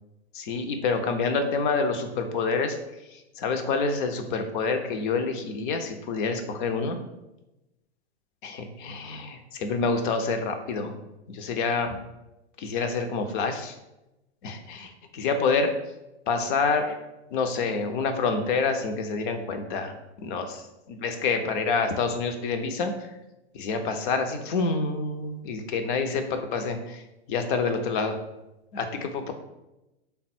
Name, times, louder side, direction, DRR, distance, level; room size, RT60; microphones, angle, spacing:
voice 1, 0.3-2.8 3.1-7.0 8.4-10.9 11.3-11.9 12.6-13.8 14.4-15.7 16.3-16.9 17.3-19.9 20.2-23.1 23.5-27.0 27.3-28.2 28.7-29.3, left 4 dB, 50° left, 6 dB, 0.6 m, -27 dB
3.5 x 2.2 x 4.3 m, 0.96 s
hypercardioid pair, 115°, 33 cm